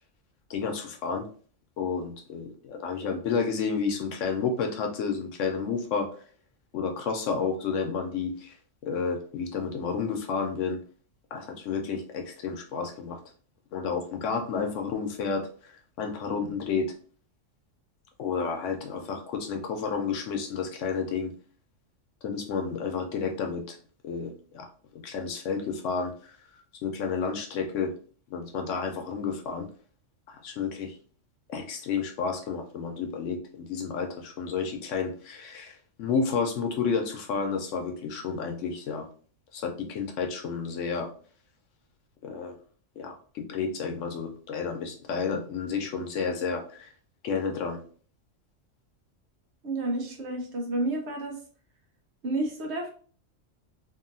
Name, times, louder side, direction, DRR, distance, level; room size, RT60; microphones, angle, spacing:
voice 1, 0.5-1.3 1.8-6.1 6.7-8.6 8.8-10.8 11.3-13.2 13.7-16.9 18.2-21.3 22.2-23.8 24.0-24.7 24.9-26.3 26.8-27.9 28.3-29.7 30.3-31.0 31.5-39.1 39.5-41.1 42.2-42.6 43.0-46.9 47.2-47.8, left 5 dB, 75° left, 4 dB, 0.9 m, -31 dB
voice 2, 49.6-51.4 52.2-52.9, right 2 dB, 65° right, 2 dB, 1.0 m, -30 dB
2.8 x 2.6 x 2.5 m, 0.43 s
omnidirectional pair, 1.3 m